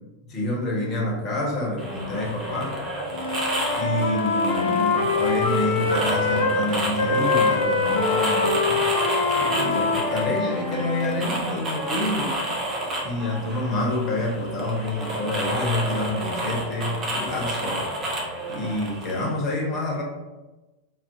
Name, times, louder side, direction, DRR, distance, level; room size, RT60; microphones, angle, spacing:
voice 1, 0.3-2.8 3.7-8.9 9.3-12.4 13.0-17.9 18.5-20.0, left 1 dB, 35° left, -2 dB, 0.7 m, -28 dB
sound 1, 1.8-19.3, right 1 dB, 25° right, 0.6 m, -30 dB
Wind instrument woodwind instrument, 3.1-6.7 7.0-11.2, left 4 dB, 70° left, 0.4 m, -24 dB
2.4 x 2.0 x 2.6 m, 1.1 s
figure-of-eight pair, 90°, 0 cm